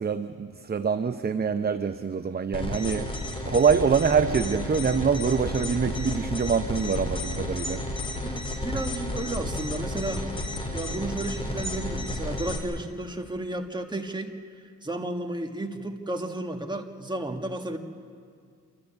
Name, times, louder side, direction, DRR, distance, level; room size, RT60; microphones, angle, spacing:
voice 1, 0.0-3.1 3.5-7.8, right 6 dB, 30° right, 10 dB, 0.7 m, -25 dB
sound 1, 2.5-12.6, left 1 dB, 15° left, 3.2 m, -32 dB
voice 2, 8.2-10.2 10.7-14.3 14.8-17.8, right 1 dB, 15° right, 4 dB, 1.9 m, -33 dB
28.0 x 13.0 x 8.6 m, 2.2 s
cardioid pair, 90°, 31 cm